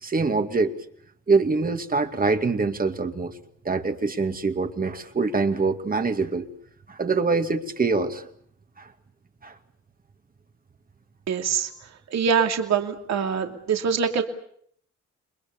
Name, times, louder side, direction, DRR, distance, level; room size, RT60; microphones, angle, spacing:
voice 1, 0.0-0.7 1.3-3.3 3.6-6.5 6.9-8.3 8.8-8.9 9.4-9.6, right 4 dB, 30° right, 7 dB, 2.3 m, -24 dB
voice 2, 11.3-11.7 12.1-14.2, right 6 dB, 60° right, 4 dB, 2.8 m, -24 dB
29.5 x 22.0 x 7.0 m, 0.65 s
cardioid pair, 90°, 30 cm